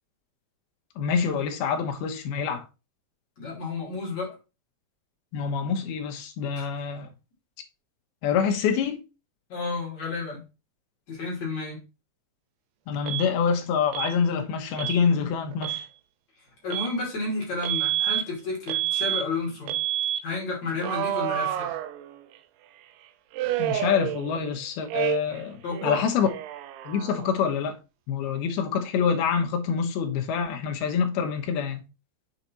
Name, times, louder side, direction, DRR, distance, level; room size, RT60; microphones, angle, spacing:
voice 1, 1.0-2.6 5.3-7.1 8.2-9.0 12.9-15.8 23.6-26.3 26.9-27.8 28.1-31.8, left 6 dB, 75° left, 2.9 m, -26 dB
voice 2, 3.4-4.4 6.5-6.7 9.5-10.4 11.1-11.8 16.6-19.8 20.2-21.7 25.6-26.0, left 3 dB, 45° left, 3.4 m, -31 dB
Alarm, 13.1-13.3 13.9-14.2 14.8-15.0 15.5-15.9 16.7-16.9 17.6-18.2 18.7-19.2 19.7-20.2 20.8-22.4 23.3-24.5 24.9-25.4 25.7-27.4, right 12 dB, 80° right, 2.7 m, -29 dB
7.1 x 4.2 x 4.2 m
omnidirectional pair, 4.7 m